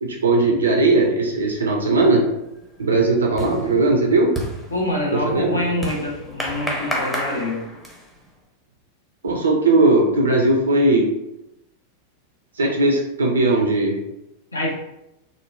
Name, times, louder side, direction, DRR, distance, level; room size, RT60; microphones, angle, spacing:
voice 1, 0.0-2.2 2.8-4.3 5.2-5.6 9.2-11.1 12.6-14.0, right 2 dB, 70° right, 1 dB, 0.3 m, -18 dB
sound 1, 1.7-2.1 2.4-8.2, equal, 5° left, 0.6 m, -31 dB
voice 2, 4.7-7.6 14.5-14.7, left 1 dB, 80° left, -2 dB, 0.6 m, -25 dB
3.0 x 2.0 x 2.4 m, 0.89 s
figure-of-eight pair, 90°, 0 cm